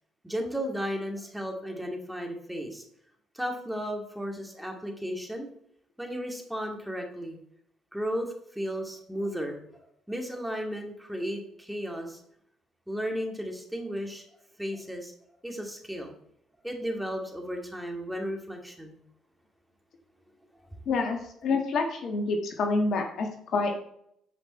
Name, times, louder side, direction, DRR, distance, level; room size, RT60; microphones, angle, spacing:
voice 1, 0.2-2.8 3.3-5.5 6.0-7.4 7.9-9.6 10.1-12.2 12.9-14.2 14.6-15.1 15.4-16.1 16.6-19.0, equal, 5° right, 2 dB, 2.3 m, -34 dB
voice 2, 20.9-23.8, left 3 dB, 65° left, 3 dB, 1.5 m, -28 dB
9.4 x 5.2 x 4.3 m, 0.70 s
hypercardioid pair, 50°, 0 cm